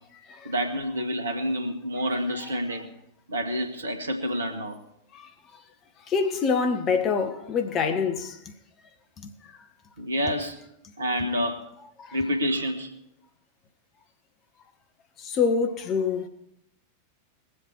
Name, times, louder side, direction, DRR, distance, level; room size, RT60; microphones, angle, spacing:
voice 1, 0.4-2.9 3.3-4.8 10.0-10.6 11.0-11.6 12.1-13.0, equal, 75° right, 1.6 m, -28 dB
voice 2, 6.1-8.5 9.2-9.3 12.0-12.2 15.2-16.3, left 5 dB, 30° left, 1.4 m, -26 dB
21.5 x 7.8 x 4.7 m
figure-of-eight pair, 90°, 0 cm